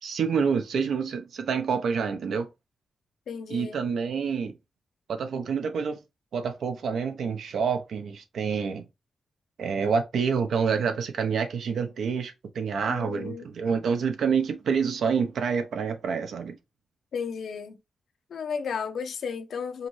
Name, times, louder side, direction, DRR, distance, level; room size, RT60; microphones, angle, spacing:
voice 1, 0.0-2.5 3.5-4.5 5.1-6.0 6.3-8.8 9.6-16.5, right 6 dB, 80° right, 0.9 m, -27 dB
voice 2, 3.3-3.8 12.9-13.5 17.1-17.8 18.3-19.9, left 6 dB, 75° left, 0.8 m, -33 dB
5.0 x 3.1 x 3.2 m
wide cardioid pair, 135°, 0 cm